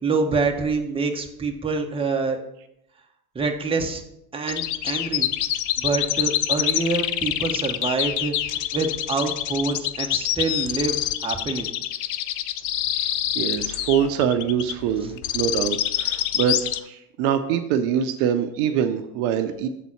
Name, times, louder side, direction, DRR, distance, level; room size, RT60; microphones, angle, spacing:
voice 1, 0.0-2.4 3.3-4.0 4.3-5.3 5.8-11.0 11.2-11.7, right 4 dB, 10° right, 3 dB, 0.9 m, -26 dB
sound 1, 4.5-16.8, left 12 dB, 45° left, 0.5 m, -26 dB
voice 2, 13.3-19.7, right 8 dB, 60° right, 8 dB, 0.7 m, -24 dB
7.5 x 4.1 x 5.8 m, 0.82 s
hypercardioid pair, 90°, 45 cm